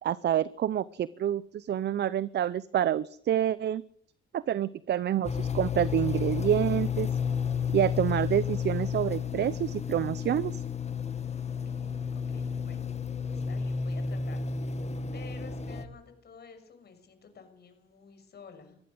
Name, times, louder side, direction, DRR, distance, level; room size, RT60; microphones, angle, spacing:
voice 1, 0.0-3.8 4.3-7.1 7.7-10.6, right 10 dB, 60° right, 18 dB, 0.7 m, -28 dB
sound 1, 5.2-15.9, left 6 dB, 35° left, 2.0 m, -32 dB
voice 2, 11.4-12.8 13.3-14.4 15.1-18.8, left 6 dB, 55° left, 7 dB, 6.2 m, -51 dB
21.5 x 15.0 x 8.0 m, 0.69 s
cardioid pair, 90°, 20 cm